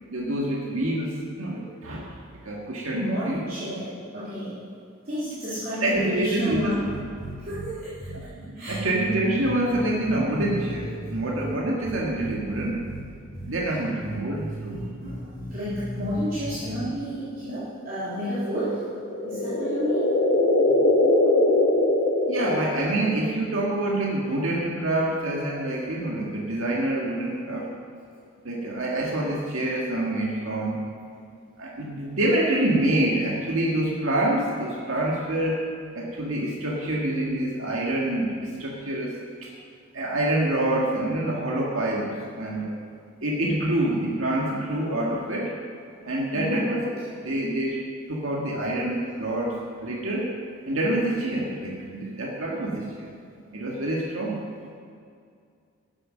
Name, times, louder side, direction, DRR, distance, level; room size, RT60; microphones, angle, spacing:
voice 1, 0.1-2.1 2.4-3.4 5.8-6.7 8.2-12.8 13.5-14.8 22.3-27.7 28.4-30.8 31.6-35.6 36.0-39.1 39.4-39.5 39.9-42.7 43.2-45.5 46.0-47.0 47.2-47.8 48.1-50.3 50.7-53.1 53.5-54.4, right 1 dB, 85° right, -2 dB, 1.8 m, -26 dB
voice 2, 2.9-4.6 5.0-6.8 7.4-7.9 8.5-8.8 13.7-13.8 15.0-18.8 19.2-20.0 20.7-20.8 46.3-46.6 49.0-49.2, equal, 45° right, -13 dB, 3.6 m, -31 dB
sound 1, 6.5-7.7 8.0-8.2 8.7-11.5 11.8-13.0 13.3-13.5 14.0-16.9, right 1 dB, 20° left, 2.8 m, -36 dB
sound 2, 18.9-23.1, left 1 dB, 50° left, 1.7 m, -22 dB
13.0 x 9.8 x 6.3 m, 2.3 s
head